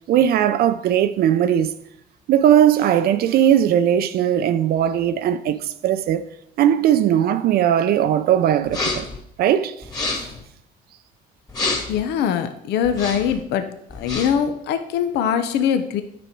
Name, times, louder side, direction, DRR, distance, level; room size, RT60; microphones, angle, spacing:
voice 1, 0.1-1.7 2.3-6.2 6.6-9.1 9.4-9.8 10.2-10.3, right 10 dB, 65° right, 0.5 m, -18 dB
sound 1, 8.7-9.2 9.8-10.4 11.5-12.0 12.8-13.4 13.9-14.5, left 3 dB, 20° left, 1.8 m, -28 dB
voice 2, 11.9-13.7 13.9-16.0, left 8 dB, 80° left, 0.8 m, -22 dB
9.4 x 5.2 x 4.6 m
cardioid pair, 110°, 17 cm